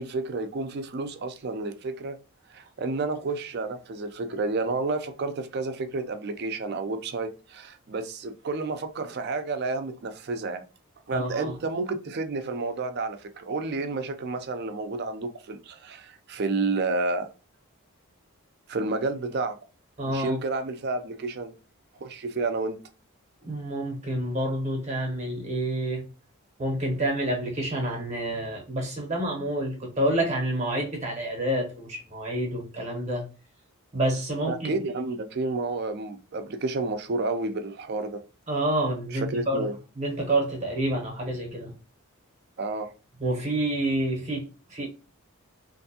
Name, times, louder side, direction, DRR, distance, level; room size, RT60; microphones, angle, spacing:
voice 1, 0.0-2.2 2.5-10.6 11.1-17.3 18.7-19.6 20.1-21.5 22.0-22.8 34.5-38.2 39.1-39.7 42.6-42.9, right 3 dB, 45° right, 0.4 m, -30 dB
voice 2, 11.1-11.5 20.0-20.4 23.4-26.0 26.6-33.3 33.9-34.8 38.5-39.7 40.0-41.7 43.2-44.9, right 1 dB, 30° right, 0.8 m, -28 dB
3.3 x 2.6 x 2.7 m
head